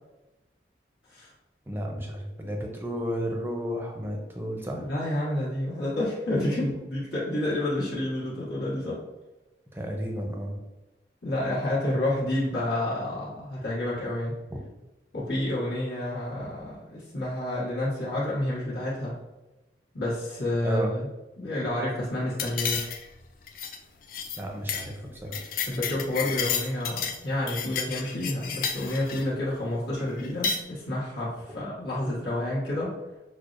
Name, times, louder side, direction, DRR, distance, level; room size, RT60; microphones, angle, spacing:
voice 1, 1.7-4.9 9.7-10.6 14.5-14.6 20.6-20.9 24.4-25.4, equal, 10° right, 1 dB, 0.5 m, -33 dB
voice 2, 4.8-9.0 11.2-14.3 15.1-19.1 19.9-21.1 21.4-22.8 25.6-32.9, left 1 dB, 75° left, -9 dB, 1.3 m, -29 dB
sound 1, 22.4-23.2 23.5-23.8 24.1-24.4 24.7-24.9 25.1-27.2 27.5-29.3 30.2-30.6, left 6 dB, 50° left, 0.3 m, -31 dB
6.2 x 2.1 x 2.5 m, 1.1 s
head